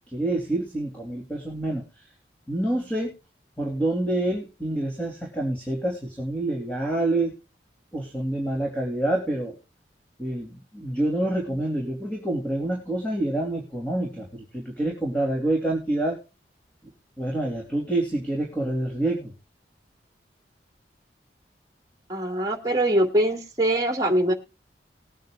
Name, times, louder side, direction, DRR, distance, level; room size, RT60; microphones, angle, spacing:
voice 1, 0.1-1.8 2.5-3.1 3.6-7.4 7.9-9.5 10.2-16.2 17.2-19.3, right 1 dB, 10° left, -1 dB, 2.9 m, -27 dB
voice 2, 22.1-24.3, right 1 dB, 20° right, 5 dB, 2.2 m, -23 dB
20.5 x 9.2 x 2.4 m, 0.30 s
head